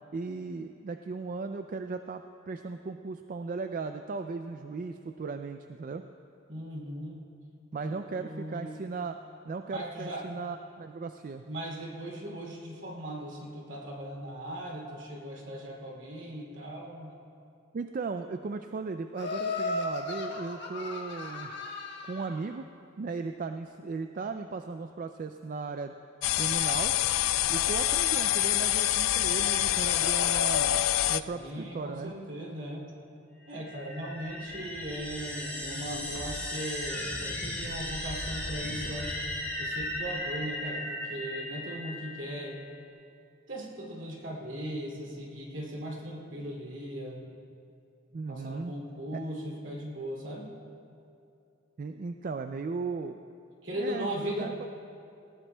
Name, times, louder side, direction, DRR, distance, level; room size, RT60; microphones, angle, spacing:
voice 1, 0.1-6.1 7.7-9.2 9.5-11.4 17.7-21.5 22.0-22.6 23.0-25.9 26.4-26.9 27.5-30.8 31.1-32.1 48.1-48.7 51.8-53.2 53.7-54.7, right 4 dB, 40° right, 7 dB, 0.3 m, -36 dB
voice 2, 6.5-7.2 8.1-8.7 9.7-10.3 11.4-17.2 31.2-32.9 33.5-39.2 39.6-42.6 43.5-47.3 48.3-50.5 53.6-54.7, equal, 65° right, -3 dB, 2.6 m, -38 dB
Laughter, 19.2-22.4, left 3 dB, 60° left, 1.5 m, -35 dB
sound 1, 26.2-31.2, left 13 dB, 90° left, 0.3 m, -26 dB
sound 2, 33.5-42.8, left 1 dB, 10° left, 2.2 m, -36 dB
19.0 x 18.0 x 2.3 m, 2.7 s
head